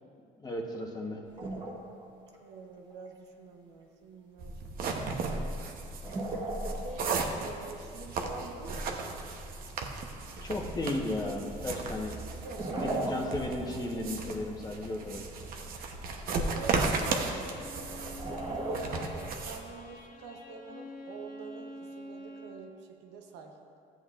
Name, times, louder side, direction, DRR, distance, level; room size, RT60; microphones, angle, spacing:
voice 1, 0.4-1.2 10.4-12.1 12.8-15.2, left 1 dB, 25° left, 0 dB, 1.2 m, -35 dB
sound 1, 1.4-2.0 2.3-2.4 2.9-3.0 5.9-7.3 10.7-10.8 12.3-13.8 14.1-14.2 18.0-19.5, right 1 dB, 25° right, 1.6 m, -36 dB
voice 2, 2.4-5.1 6.7-9.2 12.3-14.2 16.3-17.6 18.3-23.5, right 4 dB, 85° right, 3 dB, 0.9 m, -46 dB
sound 2, 4.4-19.6, right 3 dB, 60° right, 0.9 m, -35 dB
Bowed string instrument, 17.3-22.7, left 1 dB, 55° left, 1.2 m, -47 dB
13.5 x 7.9 x 2.5 m, 2.5 s
cardioid pair, 110°, 17 cm